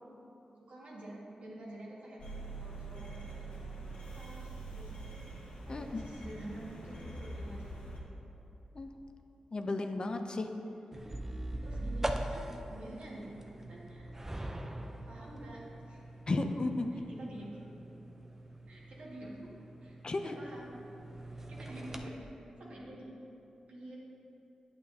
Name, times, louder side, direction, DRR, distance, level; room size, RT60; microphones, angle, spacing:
voice 1, 0.7-2.2 2.6-4.9 5.7-8.0 11.6-12.4 12.7-14.1 15.1-16.0 16.9-17.5 18.7-19.4 19.8-20.7 21.5-22.2 22.6-23.2 23.7-24.0, right 1 dB, 75° right, -5 dB, 1.9 m, -48 dB
sound 1, 2.2-8.0, right 2 dB, 80° left, 1.6 m, -44 dB
voice 2, 5.7-6.0 8.7-8.9 9.5-10.5 16.3-16.9 20.0-20.4, left 2 dB, 45° left, 6 dB, 0.5 m, -33 dB
sound 2, 10.9-22.1, right 1 dB, 20° right, 0.5 m, -42 dB
8.7 x 8.5 x 2.8 m, 3.0 s
cardioid pair, 60°, 2 cm